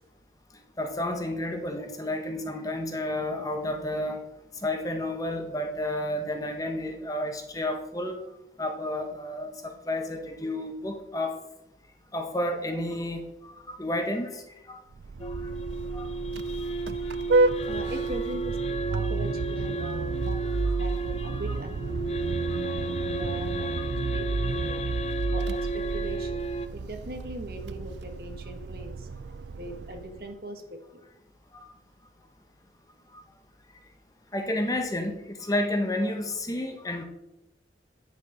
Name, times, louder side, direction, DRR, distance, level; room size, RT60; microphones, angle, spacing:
voice 1, 0.8-4.2 4.6-8.2 8.6-11.4 12.1-14.4 14.7-14.8 15.2-15.3 15.9-16.1 19.8-19.9 31.5-31.7 34.3-37.0, left 1 dB, 20° left, 4 dB, 1.1 m, -31 dB
Vehicle horn car horn honking, 14.9-30.3, right 3 dB, 80° right, 0.4 m, -31 dB
sound 1, 15.2-26.7, right 2 dB, 35° left, 0.5 m, -33 dB
voice 2, 17.6-24.8 25.3-26.5 26.7-29.1 29.6-31.0, right 1 dB, 55° right, 5 dB, 1.4 m, -40 dB
9.7 x 6.8 x 5.0 m, 0.90 s
head